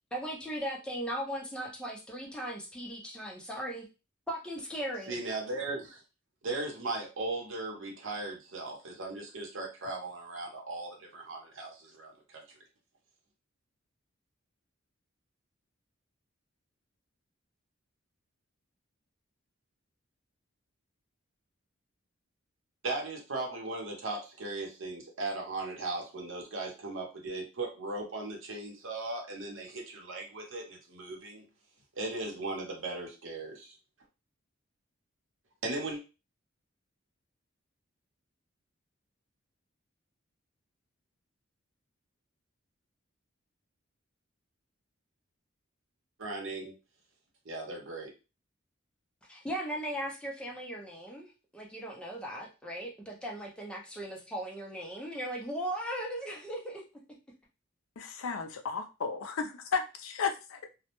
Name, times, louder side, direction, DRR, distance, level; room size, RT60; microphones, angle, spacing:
voice 1, 0.1-3.9 4.3-5.2 49.3-56.8, right 1 dB, 5° left, -1 dB, 0.5 m, -38 dB
voice 2, 5.1-6.0 6.4-12.4 22.8-31.4 32.0-33.8 35.6-36.0 46.2-46.7 47.4-48.1, right 2 dB, 70° right, 1 dB, 0.8 m, -37 dB
voice 3, 58.0-59.3 59.7-60.6, left 5 dB, 90° left, 5 dB, 0.4 m, -33 dB
2.1 x 2.1 x 2.9 m, 0.30 s
head